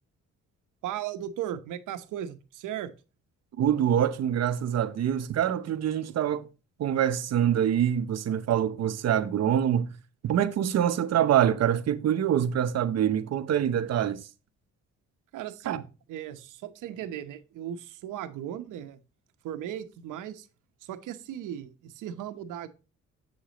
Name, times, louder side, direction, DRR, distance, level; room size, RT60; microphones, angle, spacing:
voice 1, 0.8-2.9 15.3-19.0 19.4-20.5 20.8-22.7, right 10 dB, 85° right, 0.9 m, -37 dB
voice 2, 3.6-6.5 6.8-9.9 10.2-14.2 15.6-15.8, right 10 dB, 60° right, 0.8 m, -25 dB
8.0 x 6.5 x 2.9 m
cardioid pair, 90°, 30 cm